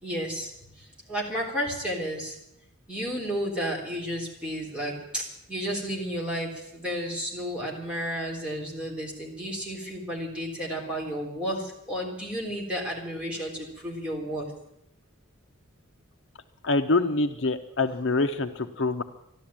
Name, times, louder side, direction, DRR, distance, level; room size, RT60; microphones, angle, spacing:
voice 1, 0.0-2.4 2.9-14.5, equal, 5° right, -4 dB, 3.7 m, -32 dB
voice 2, 16.6-19.0, left 3 dB, 55° left, 7 dB, 0.8 m, -25 dB
12.5 x 12.5 x 8.8 m, 0.79 s
head